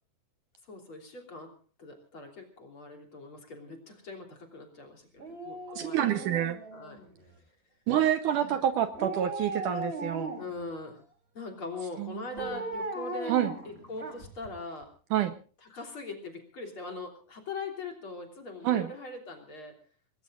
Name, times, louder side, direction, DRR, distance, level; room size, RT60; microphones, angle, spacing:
voice 1, 0.7-6.3 6.7-7.0 8.4-8.7 10.3-11.0 11.3-13.4 13.7-14.9 15.6-19.8, left 3 dB, 35° left, 2 dB, 3.7 m, -41 dB
Dog, 5.2-7.2 8.9-10.6 12.4-14.5 14.8-14.9, right 2 dB, 15° right, 3.3 m, -38 dB
voice 2, 5.7-6.6 7.9-10.4 12.0-12.2 13.3-13.5 15.1-15.3 18.6-18.9, right 11 dB, 70° right, 9 dB, 2.2 m, -27 dB
27.0 x 20.0 x 2.5 m, 0.38 s
omnidirectional pair, 4.2 m